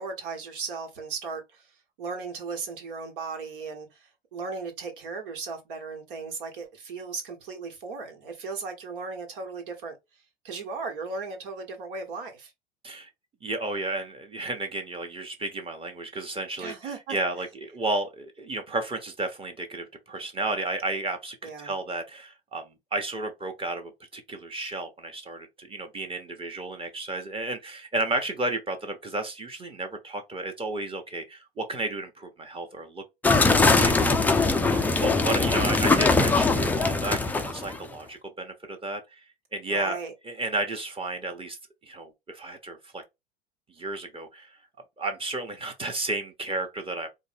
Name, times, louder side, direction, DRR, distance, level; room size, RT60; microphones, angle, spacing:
voice 1, 0.0-10.0 10.4-12.5 16.6-17.2 21.4-21.7 34.6-34.9 39.7-40.1, right 4 dB, 60° right, 1.4 m, -36 dB
voice 2, 13.4-33.0 33.5-34.2 35.0-39.0 39.5-40.0 40.2-41.6 41.8-43.0 43.7-44.6 45.0-47.1, right 2 dB, 20° right, 1.1 m, -32 dB
sound 1, 33.2-37.8, left 3 dB, 5° left, 0.4 m, -21 dB
4.4 x 2.2 x 3.4 m
figure-of-eight pair, 75°, 30 cm